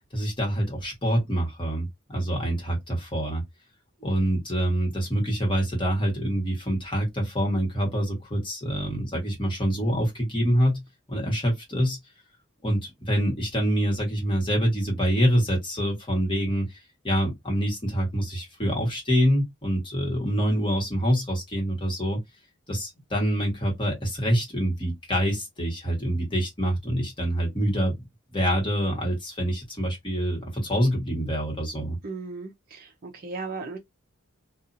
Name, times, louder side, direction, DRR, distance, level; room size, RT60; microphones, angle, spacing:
voice 1, 0.1-3.4 4.0-10.8 11.1-12.0 12.6-16.8 17.0-22.2 22.7-27.9 28.3-32.0, equal, 25° left, 1.3 m, -26 dB
voice 2, 32.0-33.8, right 4 dB, 45° right, 0.6 m, -36 dB
2.7 x 2.4 x 2.5 m
head